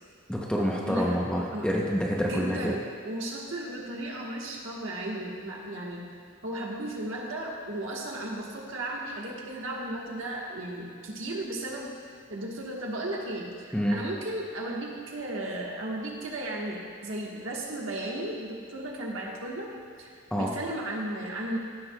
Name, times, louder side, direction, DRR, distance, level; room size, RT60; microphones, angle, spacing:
voice 1, 0.3-2.7 13.7-14.0 20.3-20.6, equal, 5° left, -2 dB, 0.6 m, -27 dB
voice 2, 0.8-1.2 1.5-1.7 2.2-6.0 6.4-11.9 12.3-19.7 20.0-21.6, right 1 dB, 80° right, -2 dB, 1.2 m, -35 dB
15.5 x 6.3 x 2.2 m, 2.1 s
head